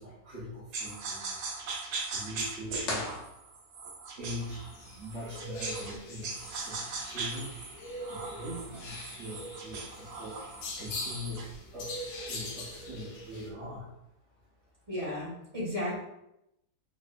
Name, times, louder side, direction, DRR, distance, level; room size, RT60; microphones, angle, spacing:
voice 1, 0.0-1.4 2.1-3.1 4.2-4.6 4.9-7.5 8.1-10.4 10.8-13.9, equal, 50° right, -6 dB, 1.3 m, -42 dB
sound 1, 0.7-6.0 6.2-11.5, right 4 dB, 80° right, 1.3 m, -40 dB
sound 2, 2.8-4.0, left 1 dB, 50° left, 1.2 m, -37 dB
sound 3, 4.3-13.5, left 1 dB, 75° left, 1.3 m, -43 dB
voice 2, 14.9-16.0, left 1 dB, 20° right, -8 dB, 1.7 m, -34 dB
5.1 x 3.3 x 2.5 m, 0.85 s
omnidirectional pair, 1.7 m